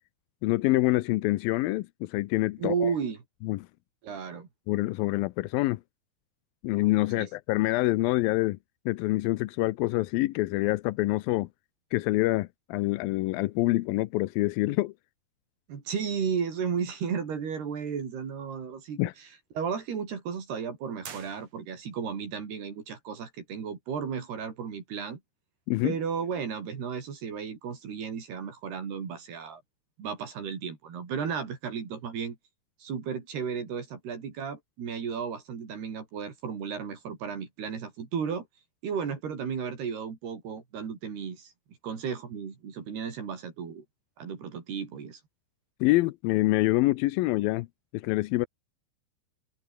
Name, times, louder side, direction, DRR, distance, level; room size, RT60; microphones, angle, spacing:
voice 1, 0.4-2.9 3.4-3.7 4.7-5.8 6.6-8.6 8.9-11.5 11.9-14.9 19.0-19.1 25.7-25.9 45.8-47.7 47.9-48.5, left 19 dB, 80° left, 2.2 m, -26 dB
voice 2, 2.6-3.2 4.0-4.5 7.2-7.3 15.7-19.3 19.6-25.2 25.8-29.6 30.0-32.4 32.8-38.5 38.8-41.5 41.8-43.8 44.2-45.2, right 6 dB, 70° right, 6.0 m, -34 dB
sound 1, 21.0-22.0, right 7 dB, 45° right, 3.5 m, -46 dB
omnidirectional pair, 4.8 m